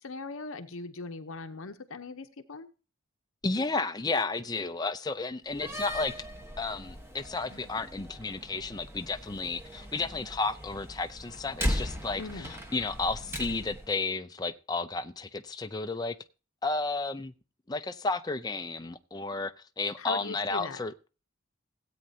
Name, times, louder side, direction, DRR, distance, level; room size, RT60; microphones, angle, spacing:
voice 1, 0.0-2.7 7.5-7.7 12.2-12.6 20.0-20.8, left 3 dB, 65° left, 0.8 m, -40 dB
voice 2, 3.4-6.1 6.6-16.2 16.6-17.3 17.7-20.9, left 3 dB, 20° left, 0.5 m, -32 dB
Slam, 5.5-13.9, equal, 10° right, 1.2 m, -38 dB
16.5 x 8.7 x 2.8 m
head